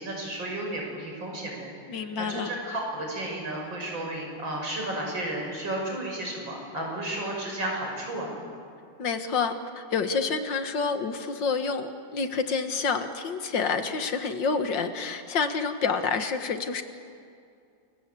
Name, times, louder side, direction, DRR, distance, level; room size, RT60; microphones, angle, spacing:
voice 1, 0.0-8.3, right 1 dB, 90° right, 0 dB, 7.1 m, -33 dB
voice 2, 1.9-2.5 9.0-16.8, left 5 dB, 75° left, 8 dB, 2.3 m, -28 dB
29.0 x 23.0 x 8.5 m, 2.4 s
omnidirectional pair, 2.0 m